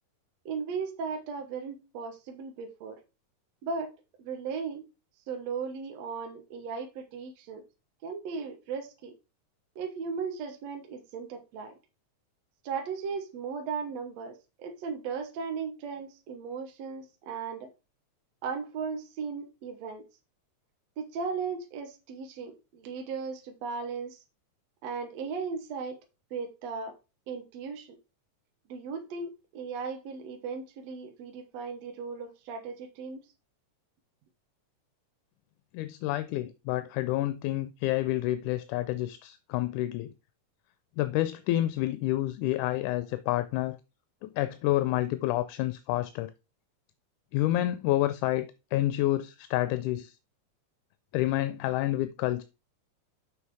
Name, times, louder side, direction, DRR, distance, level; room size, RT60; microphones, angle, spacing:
voice 1, 0.5-3.0 3.6-3.9 4.2-4.8 5.3-7.6 8.0-9.1 9.8-11.7 12.6-17.7 18.4-20.1 21.0-24.2 24.8-26.0 26.3-27.0 27.3-27.9 28.7-33.2, right 5 dB, 65° right, 2.2 m, -36 dB
voice 2, 35.7-40.1 41.0-43.8 44.2-46.3 47.3-50.1 51.1-52.4, left 15 dB, 85° left, 2.0 m, -29 dB
6.4 x 6.1 x 4.7 m
omnidirectional pair, 3.6 m